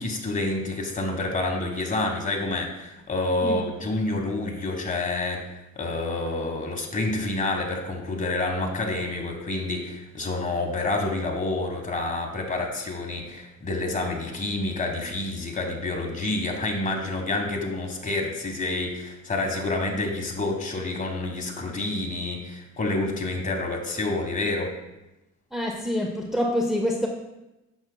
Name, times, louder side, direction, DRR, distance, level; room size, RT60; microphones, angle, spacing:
voice 1, 0.0-5.5 5.7-24.7, left 2 dB, 25° left, 2 dB, 1.4 m, -28 dB
voice 2, 25.5-27.1, left 1 dB, ahead, 0 dB, 0.7 m, -26 dB
8.5 x 6.9 x 2.2 m, 0.97 s
cardioid pair, 90°, 30 cm